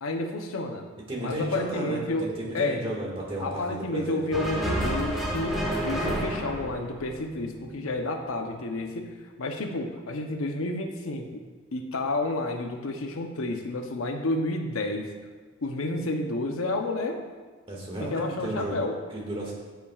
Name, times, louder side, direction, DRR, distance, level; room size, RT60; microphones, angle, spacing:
voice 1, 0.0-0.9 1.2-2.8 3.4-9.1 9.4-11.3 11.7-15.1 15.6-17.2 18.0-19.0, left 2 dB, 75° left, 4 dB, 0.7 m, -30 dB
voice 2, 1.1-4.2 17.7-18.8 19.1-19.5, right 1 dB, 25° right, -3 dB, 1.8 m, -33 dB
sound 1, 4.3-7.8, equal, ahead, 1.4 m, -30 dB
13.0 x 5.7 x 2.4 m, 1.4 s
head